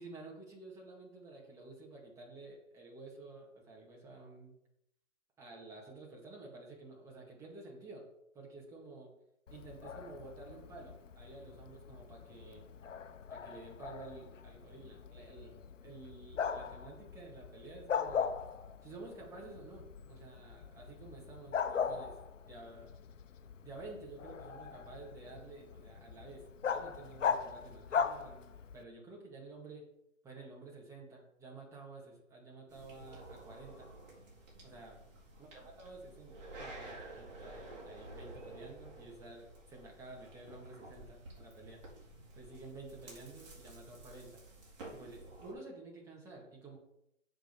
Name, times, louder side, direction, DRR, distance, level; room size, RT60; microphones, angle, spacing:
voice 1, 0.0-4.6 5.4-8.1 8.3-9.1 9.5-12.7 13.3-18.4 18.8-22.2 22.4-22.9 23.6-28.4 28.7-29.8 30.2-33.9 34.6-35.0 35.4-41.8 42.3-44.4 44.9-46.8, right 3 dB, 10° right, -3 dB, 2.0 m, -51 dB
Bark, 9.5-28.8, left 6 dB, 75° left, 1.0 m, -40 dB
sound 1, 32.7-45.5, right 2 dB, 35° right, 4.2 m, -52 dB
7.7 x 5.2 x 6.9 m, 0.79 s
hypercardioid pair, 155°, 38 cm